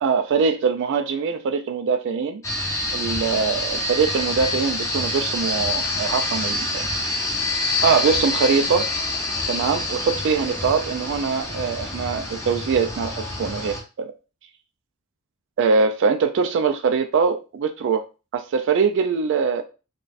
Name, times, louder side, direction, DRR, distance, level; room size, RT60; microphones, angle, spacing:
voice 1, 0.0-2.4 2.9-6.8 7.8-8.9 9.5-14.1 15.6-18.0 18.3-19.6, right 5 dB, 55° right, 0.3 m, -22 dB
sound 1, 2.4-13.8, left 2 dB, 15° left, 0.7 m, -26 dB
3.9 x 2.3 x 2.4 m
head